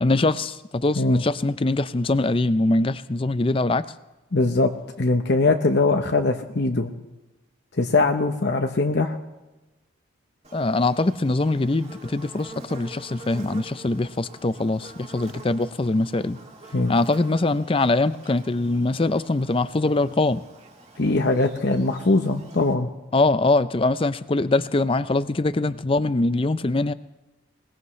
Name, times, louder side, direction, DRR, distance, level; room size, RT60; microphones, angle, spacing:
voice 1, 0.0-3.9 10.5-16.4 16.9-20.4 23.1-26.9, left 2 dB, 30° left, 14 dB, 0.5 m, -23 dB
voice 2, 4.3-4.7 5.0-6.9 7.8-9.2 16.7-16.9 21.0-22.9, left 3 dB, 55° left, 5 dB, 0.9 m, -21 dB
Buzz, 10.4-22.7, right 2 dB, 35° right, 2.6 m, -46 dB
21.5 x 20.0 x 3.2 m, 1.1 s
head